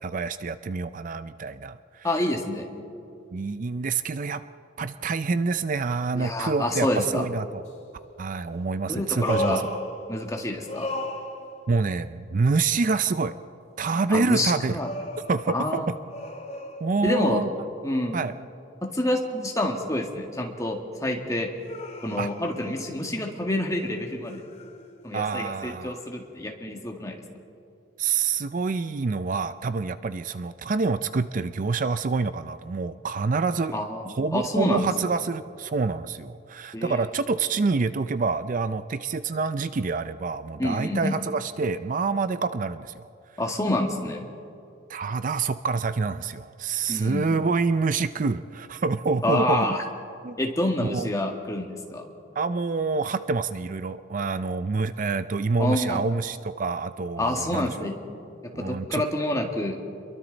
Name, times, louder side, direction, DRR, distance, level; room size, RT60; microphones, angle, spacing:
voice 1, 0.0-2.1 3.3-4.4 4.8-7.6 8.2-9.8 11.7-13.3 13.8-14.8 15.3-15.9 16.8-17.5 18.1-18.3 22.2-22.3 25.1-26.0 28.0-33.8 34.2-43.1 44.9-49.7 50.2-50.4 50.8-51.1 52.4-57.9 58.5-59.0, right 4 dB, 45° right, 12 dB, 0.5 m, -27 dB
voice 2, 2.0-2.7 6.1-7.3 8.9-9.6 10.1-10.9 14.1-14.9 15.5-15.9 17.0-17.4 17.8-18.2 18.8-21.5 22.0-24.4 25.0-27.2 33.7-34.9 36.7-37.0 40.6-41.1 43.4-44.3 46.9-47.2 49.2-49.8 50.4-52.1 55.6-56.0 57.2-57.9 58.6-59.8, left 1 dB, 15° left, 1 dB, 2.0 m, -27 dB
sound 1, 7.7-7.8 9.1-10.4 10.6-11.8 14.8-17.3 21.6-23.3 23.7-25.1 26.2-26.3, left 1 dB, 35° left, 2.2 m, -36 dB
29.5 x 22.5 x 4.1 m, 2.6 s
head